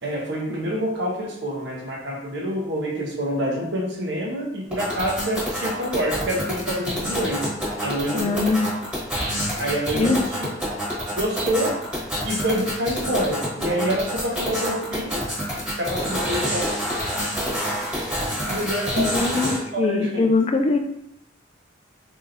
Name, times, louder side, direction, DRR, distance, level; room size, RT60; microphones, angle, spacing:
voice 1, 0.0-7.5 7.8-8.6 9.6-10.5 10.9-11.8 12.2-15.2 15.8-16.7 18.4-20.3, equal, 60° right, -1 dB, 0.8 m, -27 dB
sound 1, 4.7-19.6, equal, 5° right, 1.3 m, -27 dB
voice 2, 8.1-8.7 9.9-10.2 19.0-20.8, left 3 dB, 30° left, 4 dB, 0.3 m, -22 dB
4.1 x 2.7 x 2.6 m, 0.81 s
head